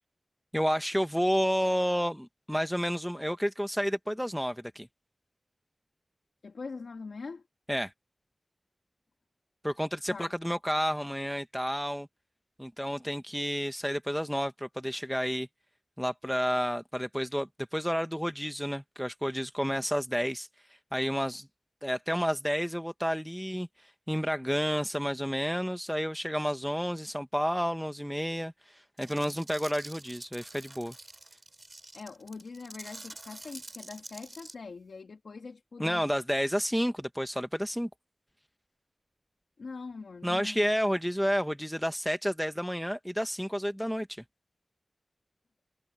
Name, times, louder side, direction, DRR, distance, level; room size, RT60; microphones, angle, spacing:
voice 1, 0.5-4.9 7.7-7.9 9.6-12.1 12.6-15.5 16.0-20.5 20.9-21.5 21.8-30.9 35.8-37.9 40.2-44.2, equal, ahead, 1.1 m, -30 dB
voice 2, 6.4-7.5 10.1-10.3 31.9-36.1 39.6-40.6, left 4 dB, 90° left, 2.4 m, -43 dB
sound 1, 29.0-34.5, right 2 dB, 35° right, 3.9 m, -47 dB
cardioid pair, 40°, 0 cm